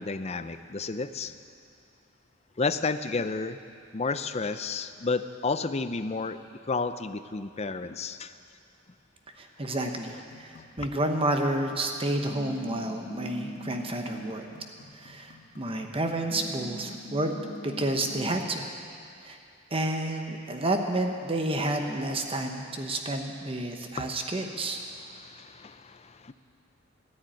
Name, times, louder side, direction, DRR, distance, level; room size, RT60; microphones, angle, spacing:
voice 1, 0.0-1.3 2.6-3.6 3.9-6.4 6.7-8.3 23.9-24.1 25.2-26.3, left 4 dB, 35° left, 11 dB, 0.6 m, -31 dB
voice 2, 9.4-14.5 14.9-17.3 17.6-18.7 19.2-19.4 19.7-24.8, right 1 dB, 30° right, 4 dB, 0.9 m, -30 dB
sound 1, 10.3-18.8, right 1 dB, 65° left, 1.8 m, -44 dB
14.0 x 10.5 x 9.1 m, 2.5 s
head